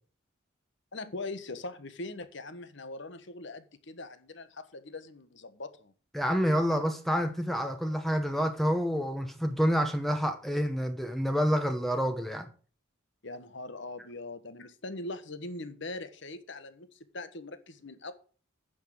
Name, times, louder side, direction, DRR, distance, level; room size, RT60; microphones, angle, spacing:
voice 1, 0.9-5.9 13.2-16.9 17.1-18.1, left 2 dB, 60° left, 1.3 m, -41 dB
voice 2, 6.1-12.5, equal, ahead, 0.9 m, -28 dB
9.4 x 6.4 x 8.4 m
head